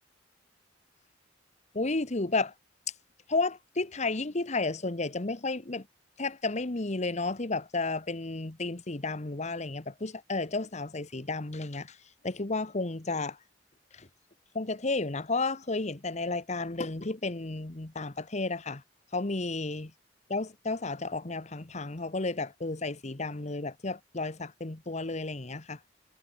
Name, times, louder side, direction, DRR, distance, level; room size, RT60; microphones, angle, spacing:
voice 1, 1.7-2.5 3.3-5.8 6.2-11.9 12.2-13.4 14.0-14.1 14.5-18.8 19.1-19.9 20.3-25.8, left 3 dB, 40° left, 1.2 m, -32 dB
head